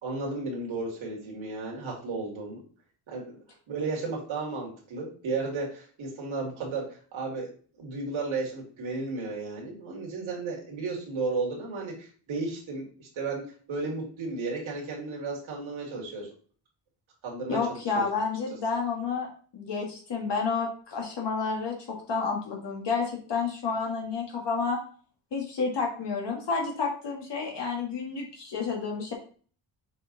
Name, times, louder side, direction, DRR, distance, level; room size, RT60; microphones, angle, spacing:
voice 1, 0.0-2.6 3.1-3.4 3.7-7.5 7.8-13.4 13.7-16.3 17.2-17.6 18.0-18.1, right 3 dB, 80° right, -2 dB, 2.3 m, -33 dB
voice 2, 17.5-24.8 25.3-29.1, left 4 dB, 60° left, 0 dB, 1.8 m, -30 dB
6.3 x 4.2 x 3.9 m, 0.43 s
wide cardioid pair, 135°, 47 cm